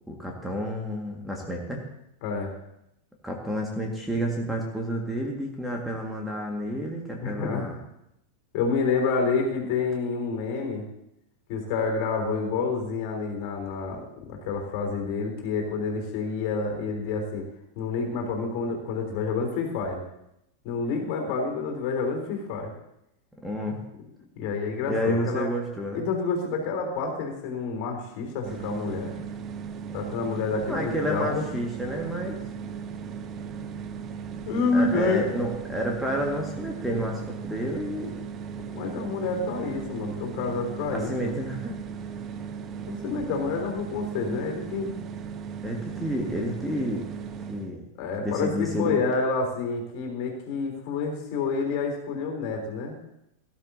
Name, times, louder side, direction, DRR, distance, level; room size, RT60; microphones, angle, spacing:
voice 1, 0.1-1.8 3.2-7.8 23.4-23.8 24.9-26.0 30.7-32.4 34.7-38.1 40.9-41.8 45.6-47.1 47.5-47.8 48.2-49.0, equal, 5° right, 0 dB, 1.9 m, -30 dB
voice 2, 7.2-7.7 8.5-10.8 11.5-17.5 17.8-20.0 20.6-22.7 24.4-25.5 25.9-29.1 29.9-31.4 34.5-35.2 38.7-41.4 42.9-45.0 48.0-52.9, left 4 dB, 45° left, 1 dB, 3.6 m, -28 dB
sound 1, 28.4-47.7, right 6 dB, 30° right, 0.8 m, -37 dB
18.5 x 11.5 x 2.8 m, 0.81 s
figure-of-eight pair, 90°, 0 cm